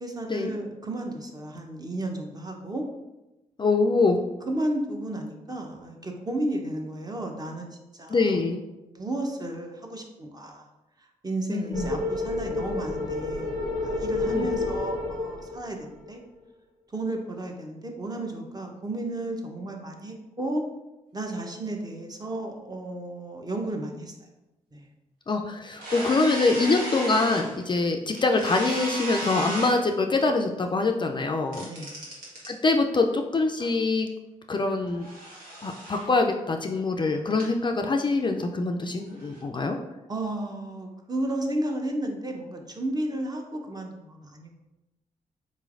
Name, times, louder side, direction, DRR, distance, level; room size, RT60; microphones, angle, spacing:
voice 1, 0.0-2.8 4.5-7.7 7.9-8.4 8.8-10.6 11.2-16.2 16.9-20.6 21.1-24.1 24.7-24.8 31.6-31.9 40.1-44.5, right 1 dB, 25° right, 2 dB, 0.7 m, -33 dB
voice 2, 3.6-4.2 8.1-8.6 11.5-11.9 14.2-14.5 25.3-31.7 32.5-34.1 34.5-35.1 35.6-39.8, left 3 dB, 35° left, 4 dB, 0.3 m, -24 dB
sound 1, 11.7-16.1, left 2 dB, 55° right, 1.1 m, -30 dB
sound 2, 25.7-27.6 28.1-29.7 31.5-32.5 33.6-33.7 34.7-36.1 37.3-37.4 39.1-39.4, right 1 dB, 80° right, 1.2 m, -35 dB
3.9 x 3.0 x 2.5 m, 1.0 s
supercardioid pair, 50°, 14 cm